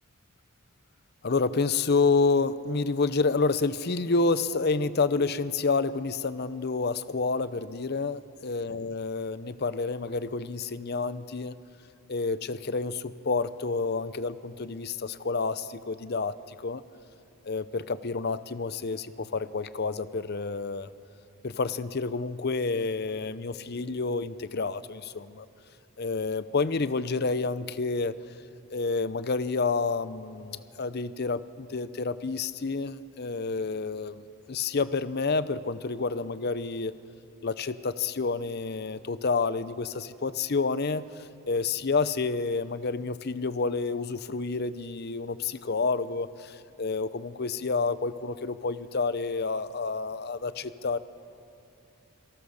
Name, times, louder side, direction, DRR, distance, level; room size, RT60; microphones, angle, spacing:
voice 1, 1.2-11.6 12.1-16.8 17.4-20.9 21.4-25.5 26.0-28.1 28.7-36.9 37.4-51.0, left 4 dB, 45° left, 14 dB, 0.6 m, -29 dB
27.5 x 18.5 x 6.5 m, 2.7 s
head